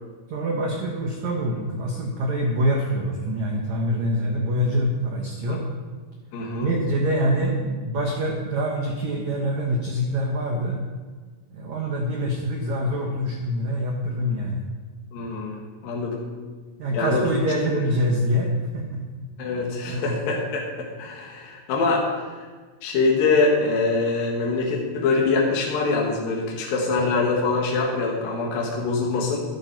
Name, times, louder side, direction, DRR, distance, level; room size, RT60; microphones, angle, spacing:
voice 1, 0.3-5.7 6.6-10.8 11.5-14.6 16.8-19.0 19.8-20.2, equal, 80° right, 0 dB, 1.6 m, -25 dB
voice 2, 6.3-6.7 15.1-16.2 16.9-17.2 17.7-17.8 19.4-22.1 22.8-29.4, left 3 dB, 60° left, -1 dB, 2.9 m, -24 dB
13.0 x 11.5 x 4.5 m, 1.4 s
omnidirectional pair, 5.2 m